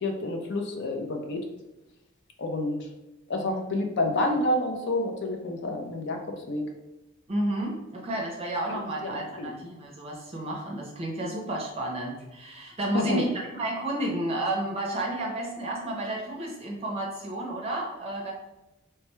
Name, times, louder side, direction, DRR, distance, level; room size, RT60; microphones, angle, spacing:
voice 1, 0.0-1.4 2.4-2.8 3.3-6.2 6.5-6.7 8.7-9.5 12.9-13.2, left 2 dB, 60° left, 3 dB, 0.5 m, -29 dB
voice 2, 7.3-18.3, right 1 dB, 30° right, -1 dB, 0.5 m, -31 dB
3.3 x 2.2 x 3.0 m, 0.99 s
head